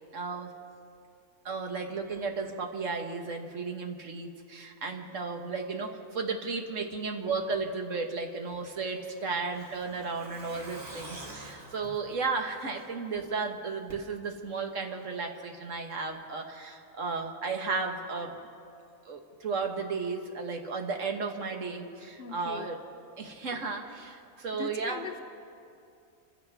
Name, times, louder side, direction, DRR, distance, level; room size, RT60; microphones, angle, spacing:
voice 1, 0.1-0.5 1.4-18.4 19.1-22.8 23.2-25.0, right 4 dB, 65° right, 3 dB, 1.6 m, -34 dB
Truck, 8.5-13.2 13.5-13.6 13.9-14.0, right 2 dB, 50° right, 2.1 m, -47 dB
voice 2, 22.2-22.7 24.5-25.2, left 6 dB, 55° left, 6 dB, 0.8 m, -41 dB
26.5 x 15.5 x 3.5 m, 2.5 s
omnidirectional pair, 1.4 m